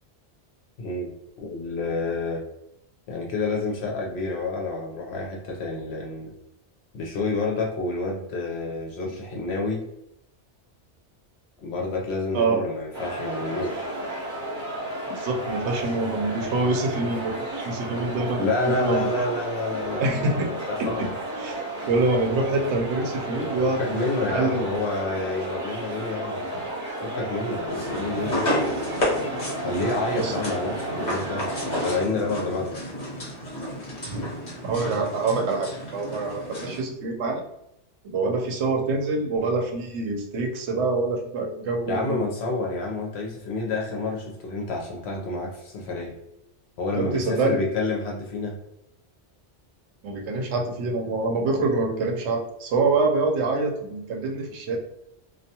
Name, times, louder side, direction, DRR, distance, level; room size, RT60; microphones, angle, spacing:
voice 1, 0.8-1.1 1.4-2.4 3.1-6.3 6.9-9.8 11.6-13.9 18.4-20.0 20.7-21.1 23.6-26.4 27.0-28.6 29.5-32.8 41.9-46.1 46.8-48.5, left 3 dB, 70° left, -1 dB, 0.8 m, -29 dB
sound 1, 12.9-32.0, right 1 dB, 50° right, 1.0 m, -33 dB
voice 2, 15.1-19.1 20.0-20.5 20.8-21.1 21.4-24.0 24.3-24.9 30.1-30.3 34.1-34.2 34.6-37.4 38.1-42.2 46.9-47.6 50.0-54.8, right 3 dB, 75° right, 2 dB, 0.9 m, -26 dB
sound 2, 27.7-36.8, left 1 dB, 40° left, 1.0 m, -31 dB
2.3 x 2.2 x 2.8 m, 0.81 s
omnidirectional pair, 1.2 m